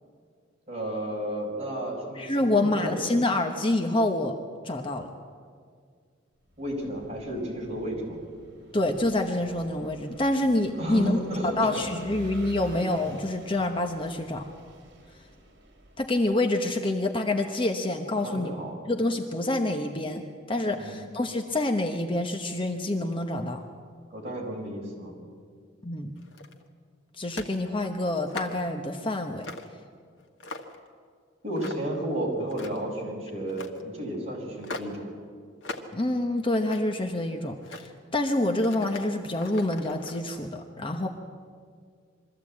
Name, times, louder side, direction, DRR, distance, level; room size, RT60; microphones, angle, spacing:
voice 1, 0.7-3.1 6.6-8.2 10.8-11.9 12.4-12.5 18.2-18.8 20.7-21.0 24.1-25.1 31.4-35.1, right 1 dB, 35° right, -2 dB, 5.1 m, -32 dB
voice 2, 2.2-4.3 4.6-5.1 8.7-11.2 11.6-14.4 16.0-18.5 18.9-20.2 20.5-23.6 25.8-26.1 27.2-29.5 35.9-41.1, left 1 dB, 25° left, 5 dB, 1.0 m, -27 dB
Vehicle / Engine, 6.5-16.3, right 1 dB, 60° right, 3.7 m, -48 dB
sound 1, 26.2-26.7 27.3-27.6 28.1-28.7 29.4-29.7 30.2-30.9 31.6-32.0 32.4-32.9 33.5-33.8 34.6-35.0 35.6-35.9 36.4-37.0 37.6-37.9 38.5-40.2, left 2 dB, 90° left, 1.6 m, -40 dB
23.0 x 14.0 x 8.5 m, 2.1 s
head